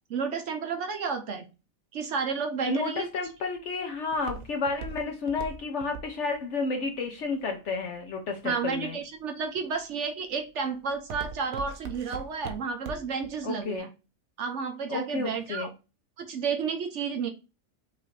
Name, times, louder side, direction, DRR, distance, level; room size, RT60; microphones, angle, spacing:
voice 1, 0.1-1.5 1.9-3.1 8.4-13.9 14.4-15.7 16.2-17.3, right 5 dB, 65° right, 6 dB, 0.9 m, -31 dB
voice 2, 2.7-9.0 13.4-13.9 14.9-15.7, left 4 dB, 60° left, 3 dB, 0.9 m, -31 dB
Walk footsteps, 3.0-8.1 8.7-9.2 9.7-10.0 10.4-13.3 13.6-13.7, right 5 dB, 80° right, 1.1 m, -40 dB
5.7 x 2.6 x 3.1 m, 0.30 s
omnidirectional pair, 1.5 m